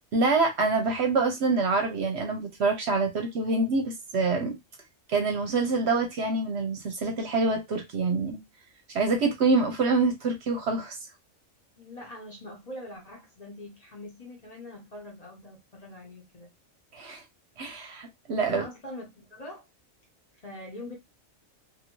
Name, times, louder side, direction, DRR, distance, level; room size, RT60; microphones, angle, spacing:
voice 1, 0.1-4.6 5.1-8.4 8.9-11.0 16.9-17.2 17.6-18.6, right 3 dB, 60° right, 0.9 m, -26 dB
voice 2, 11.7-16.5 18.5-19.6 20.4-21.0, left 1 dB, 35° left, 0.9 m, -43 dB
2.7 x 2.6 x 2.9 m
omnidirectional pair, 1.4 m